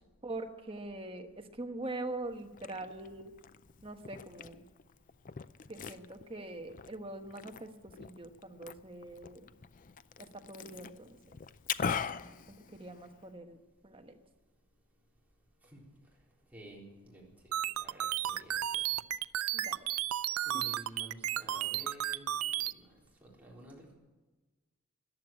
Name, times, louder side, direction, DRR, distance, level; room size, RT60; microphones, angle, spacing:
voice 1, 0.2-3.3 3.8-4.6 5.7-7.7 8.0-9.4 10.5-11.2 12.5-13.6 13.8-14.2 19.5-19.9, right 2 dB, 25° right, 5 dB, 1.3 m, -43 dB
Liquid, 2.3-13.3, left 6 dB, 40° left, 0.4 m, -42 dB
voice 2, 16.5-19.0 20.5-23.9, right 1 dB, 5° right, -4 dB, 3.9 m, -52 dB
sound 1, 17.5-22.7, right 12 dB, 80° right, 0.4 m, -33 dB
14.5 x 11.0 x 8.8 m, 1.2 s
head